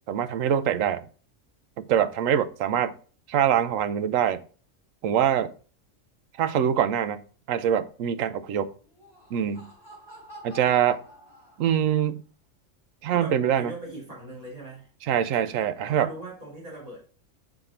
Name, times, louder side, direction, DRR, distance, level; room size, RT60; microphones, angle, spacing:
voice 1, 0.1-1.1 1.8-2.9 3.3-4.4 5.0-5.5 6.4-7.2 7.5-8.7 9.3-9.7 10.4-11.0 11.6-12.2 13.0-13.7 15.1-16.1, right 9 dB, 90° right, 1.0 m, -24 dB
Laughter, 8.8-12.0, equal, 20° left, 3.3 m, -48 dB
voice 2, 13.1-14.9 15.8-17.0, right 2 dB, 30° right, 3.2 m, -40 dB
5.9 x 5.3 x 4.3 m
omnidirectional pair, 1.3 m